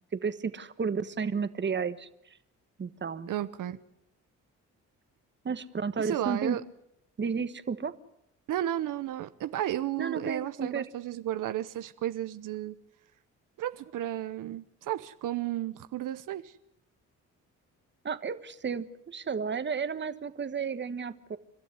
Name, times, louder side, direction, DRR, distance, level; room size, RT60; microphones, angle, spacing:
voice 1, 0.1-2.1 2.8-3.3 5.4-6.6 7.2-7.9 10.0-10.8 18.0-21.4, right 6 dB, 35° right, 12 dB, 1.4 m, -32 dB
voice 2, 3.3-3.8 6.0-6.6 8.5-12.8 13.6-16.5, right 12 dB, 80° right, 12 dB, 0.9 m, -33 dB
30.0 x 12.5 x 9.7 m, 0.79 s
cardioid pair, 95°, 31 cm